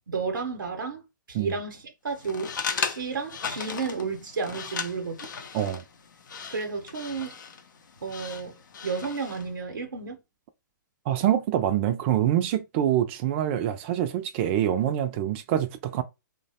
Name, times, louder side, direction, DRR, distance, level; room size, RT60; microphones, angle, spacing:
voice 1, 0.1-1.0 1.3-2.5 2.8-5.3 6.5-7.3 8.0-8.6 8.8-10.2, right 5 dB, 80° right, 0.8 m, -32 dB
sound 1, 2.2-9.5, left 6 dB, 70° left, 0.5 m, -36 dB
voice 2, 11.1-16.0, right 11 dB, 35° right, 0.4 m, -25 dB
3.0 x 2.2 x 2.7 m
hypercardioid pair, 125°, 11 cm